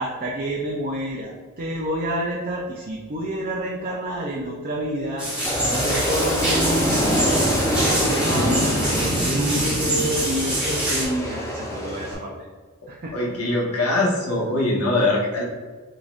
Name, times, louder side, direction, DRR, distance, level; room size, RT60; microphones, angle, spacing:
voice 1, 0.0-12.3 12.9-13.3, right 1 dB, 40° right, -2 dB, 0.5 m, -29 dB
sound 1, 5.2-11.0, right 1 dB, 5° right, 1.0 m, -24 dB
Aircraft, 5.4-12.1, equal, 15° left, 0.6 m, -26 dB
voice 2, 13.1-15.4, left 2 dB, 75° left, -2 dB, 1.0 m, -22 dB
3.8 x 3.5 x 2.4 m, 1.5 s
head